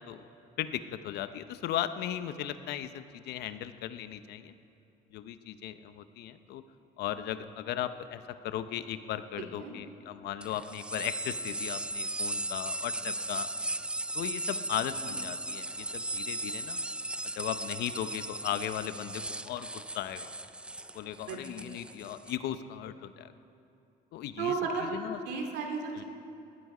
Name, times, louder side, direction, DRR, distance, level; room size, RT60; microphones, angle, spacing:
voice 1, 0.6-4.5 5.1-6.6 7.0-13.5 14.1-16.8 17.4-20.3 20.9-23.3 24.1-25.2 25.9-26.0, left 11 dB, 75° left, 11 dB, 0.8 m, -37 dB
sound 1, 10.4-22.4, right 1 dB, 5° right, 0.4 m, -37 dB
voice 2, 24.4-25.0 25.3-26.0, right 5 dB, 85° right, 2 dB, 2.5 m, -33 dB
19.5 x 14.0 x 5.0 m, 2.7 s
cardioid pair, 110°, 17 cm